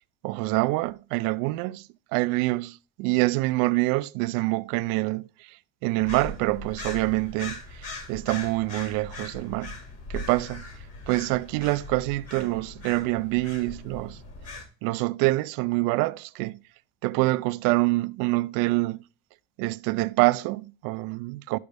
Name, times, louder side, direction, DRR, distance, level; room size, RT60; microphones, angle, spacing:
voice 1, 0.2-1.9 2.1-5.6 5.8-9.7 10.1-10.7 11.1-14.2 14.8-16.6 17.0-19.0 19.6-21.6, right 21 dB, 90° right, 0.5 m, -26 dB
sound 1, 6.0-14.6, left 2 dB, 50° left, 2.4 m, -40 dB
12.0 x 5.2 x 3.4 m
cardioid pair, 130°, 33 cm